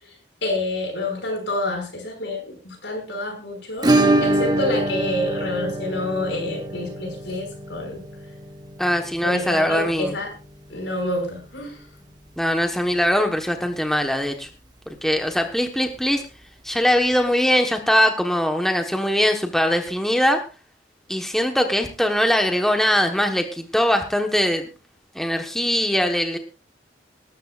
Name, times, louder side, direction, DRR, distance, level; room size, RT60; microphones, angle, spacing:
voice 1, 0.0-3.9 4.2-8.0 9.2-10.3 10.7-11.8, left 1 dB, 75° left, 3 dB, 5.8 m, -28 dB
Acoustic guitar / Strum, 3.8-12.4 12.7-12.8 13.1-13.2 13.5-13.6 15.7-15.8 16.9-17.0, right 2 dB, 20° right, 1.2 m, -26 dB
voice 2, 8.8-10.1 12.4-14.5 14.9-16.2 16.6-20.4 21.1-24.7 25.1-26.4, equal, ahead, 4 dB, 1.2 m, -21 dB
20.5 x 12.5 x 2.5 m, 0.33 s
head